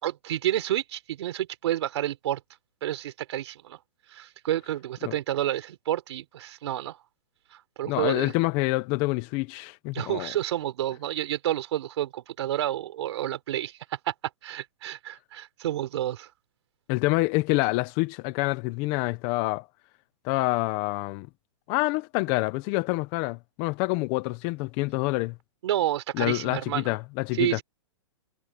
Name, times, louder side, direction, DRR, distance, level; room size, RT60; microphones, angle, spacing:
voice 1, 0.0-2.4 2.8-3.8 4.1-7.0 7.5-8.3 9.9-14.1 14.4-16.3 25.6-27.0 27.4-27.6, right 12 dB, 60° right, 4.1 m, -30 dB
voice 2, 7.9-10.3 16.9-19.6 20.2-21.3 21.7-25.3 26.2-27.6, left 23 dB, 30° left, 0.9 m, -27 dB
hypercardioid pair, 160°, 17 cm